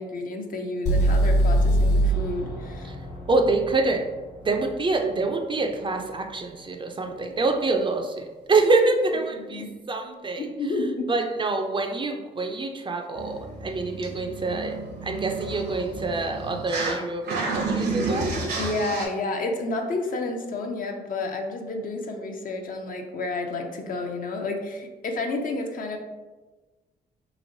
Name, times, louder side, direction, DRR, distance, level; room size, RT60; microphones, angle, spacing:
voice 1, 0.0-2.9 9.4-9.7 10.4-11.1 18.6-26.0, left 2 dB, 50° left, 3 dB, 0.5 m, -30 dB
sound 1, 0.9-4.8, right 1 dB, 75° left, 1.3 m, -23 dB
voice 2, 3.3-4.1 4.4-10.5 11.1-18.3, right 3 dB, 30° right, 4 dB, 0.4 m, -26 dB
sound 2, 13.2-17.0 17.2-19.1, right 3 dB, 70° right, 0.7 m, -31 dB
3.0 x 2.8 x 2.6 m, 1.2 s
cardioid pair, 75°, 18 cm